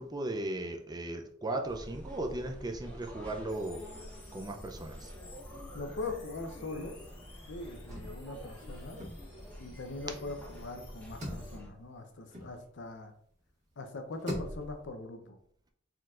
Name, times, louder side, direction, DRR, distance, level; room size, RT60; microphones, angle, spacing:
voice 1, 0.0-4.0 4.3-5.1, right 2 dB, 20° right, 3 dB, 0.4 m, -37 dB
sound 1, 1.6-11.7, equal, 5° left, 0.9 m, -48 dB
sound 2, 3.5-11.6, left 2 dB, 25° left, 1.3 m, -57 dB
sound 3, 4.9-6.1 6.4-6.5 6.8-13.2 13.7-14.9, equal, 35° right, 1.7 m, -44 dB
voice 2, 5.7-6.9 7.5-9.0 9.6-13.1 13.8-15.4, left 2 dB, 60° left, 6 dB, 0.7 m, -41 dB
4.5 x 3.8 x 2.4 m, 0.65 s
head